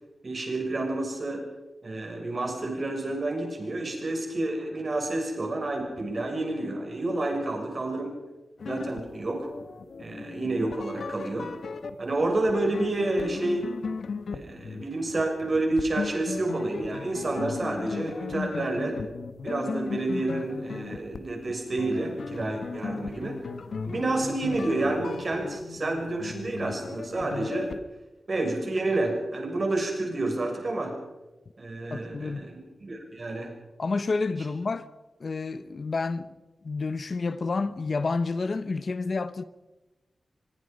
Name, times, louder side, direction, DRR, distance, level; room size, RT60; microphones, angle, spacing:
voice 1, 0.2-1.5 1.8-8.1 8.6-9.5 10.0-11.5 12.0-13.7 14.3-19.0 19.4-23.4 23.8-27.8 28.3-31.0 31.6-33.5, right 2 dB, 40° right, 6.6 m, -29 dB
sound 1, 8.6-27.8, left 4 dB, 70° left, 1.3 m, -37 dB
voice 2, 31.9-32.4 33.8-34.9 35.2-36.3 36.6-39.4, left 3 dB, 45° left, 0.8 m, -29 dB
24.5 x 23.0 x 5.3 m
wide cardioid pair, 135°, 0 cm